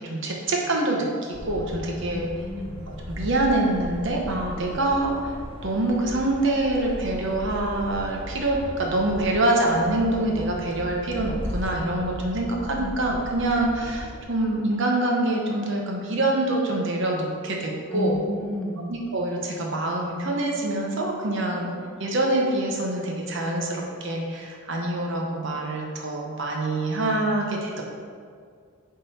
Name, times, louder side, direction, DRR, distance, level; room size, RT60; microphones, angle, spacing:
voice 1, 0.0-2.3 2.9-5.3 5.6-18.2 18.9-21.7 22.0-27.8, right 2 dB, 60° right, 0 dB, 0.9 m, -25 dB
sound 1, 1.3-14.2, equal, 25° left, 0.7 m, -37 dB
voice 2, 2.1-2.8 4.6-4.7 17.9-18.8, left 1 dB, 5° left, -5 dB, 0.9 m, -31 dB
7.1 x 3.8 x 4.2 m, 2.1 s
head